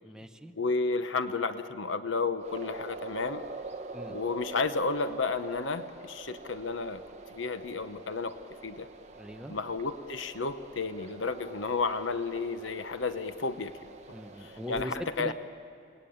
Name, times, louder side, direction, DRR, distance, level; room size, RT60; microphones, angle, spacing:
voice 1, 0.0-0.5 3.9-4.2 9.2-9.6 14.1-15.3, equal, 5° right, 5 dB, 0.9 m, -40 dB
voice 2, 0.6-3.4 4.1-7.0 7.3-8.4 8.6-8.9 9.5-13.7 14.4-15.3, left 4 dB, 85° left, 10 dB, 1.0 m, -32 dB
sound 1, 2.4-14.8, right 3 dB, 35° right, 1.3 m, -45 dB
29.5 x 19.5 x 8.8 m, 2.4 s
head